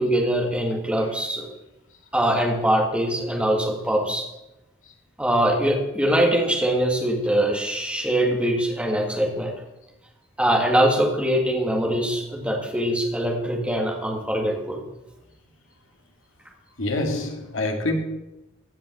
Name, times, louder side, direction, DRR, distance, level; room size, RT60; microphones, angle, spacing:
voice 1, 0.0-1.5 2.1-4.3 5.2-9.5 10.4-14.8, right 1 dB, 5° right, 1.9 m, -23 dB
voice 2, 16.8-18.0, left 2 dB, 65° left, 2.2 m, -26 dB
15.5 x 5.5 x 7.8 m
head